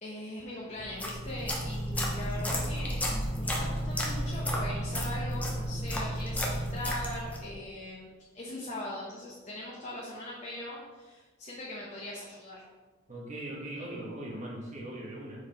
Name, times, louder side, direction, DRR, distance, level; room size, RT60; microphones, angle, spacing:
voice 1, 0.0-3.1 3.3-8.1 8.3-12.6, left 1 dB, 35° left, -5 dB, 1.0 m, -40 dB
sound 1, 0.8-7.5, equal, 5° left, 0.8 m, -32 dB
voice 2, 13.1-15.4, right 1 dB, 35° right, -3 dB, 1.5 m, -40 dB
5.7 x 4.8 x 4.4 m, 1.4 s
head